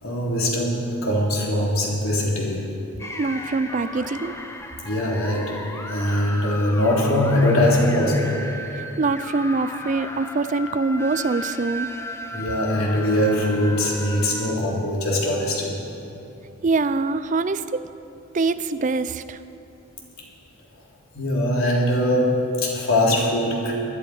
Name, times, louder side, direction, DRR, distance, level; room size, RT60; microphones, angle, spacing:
voice 1, 0.0-2.6 4.8-5.5 5.9-8.4 12.3-15.8 21.1-23.7, left 1 dB, 90° left, -3 dB, 3.2 m, -22 dB
sound 1, 3.0-14.5, left 1 dB, 15° left, 0.8 m, -35 dB
voice 2, 3.2-4.4 9.0-11.9 16.6-17.8 18.3-19.4, right 3 dB, 35° right, 13 dB, 0.4 m, -24 dB
20.0 x 11.5 x 5.0 m, 2.8 s
head